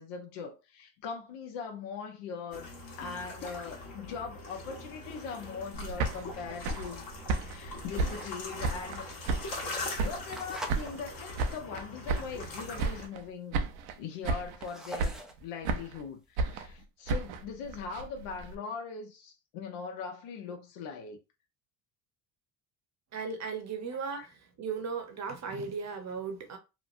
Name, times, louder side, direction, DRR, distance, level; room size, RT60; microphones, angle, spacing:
voice 1, 0.0-2.7 3.0-7.0 7.4-9.1 10.0-13.7 14.0-21.2 24.1-24.3, left 5 dB, 75° left, 0.9 m, -41 dB
sound 1, 2.5-13.1, left 2 dB, 50° left, 1.3 m, -42 dB
sound 2, 5.7-9.0 9.3-10.4 10.7-12.5 12.8-13.3 13.5-14.0 14.2-14.7 15.0-16.0 16.4-18.6, right 3 dB, 80° right, 0.7 m, -33 dB
sound 3, 9.0-11.0 11.4-11.7 12.2-12.3 12.5-12.6 12.8-13.4 13.8-16.4, equal, ahead, 0.3 m, -44 dB
voice 2, 23.1-24.2 24.6-26.6, right 5 dB, 35° right, 0.8 m, -36 dB
3.1 x 2.2 x 2.5 m
supercardioid pair, 90°, 45 cm